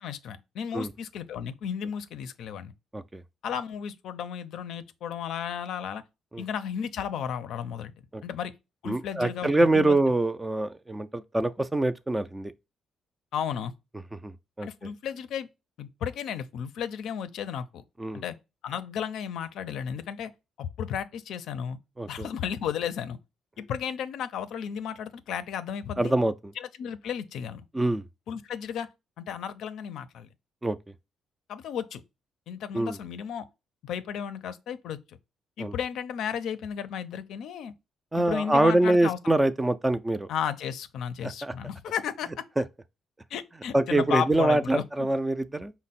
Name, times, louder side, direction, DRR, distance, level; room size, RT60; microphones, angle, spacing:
voice 1, 0.0-2.7 3.4-6.0 6.4-7.9 8.2-8.5 8.8-10.0 13.3-13.7 14.6-15.5 15.8-17.8 18.1-18.4 18.6-20.3 20.6-21.8 22.1-23.2 23.6-26.1 26.6-27.7 28.3-28.9 29.2-30.3 31.5-32.0 32.5-33.5 33.8-35.2 35.6-37.7 38.1-39.2 40.3-42.3 43.3-44.8, left 8 dB, 80° left, 0.4 m, -34 dB
voice 2, 8.9-12.5 14.2-14.7 18.0-18.2 22.0-22.3 26.0-26.5 27.7-28.0 30.6-30.8 32.7-33.0 35.6-35.7 38.1-40.3 41.2-41.5 42.6-42.7 43.7-45.7, right 2 dB, 15° right, 0.3 m, -25 dB
5.0 x 2.0 x 4.0 m
cardioid pair, 90°, 0 cm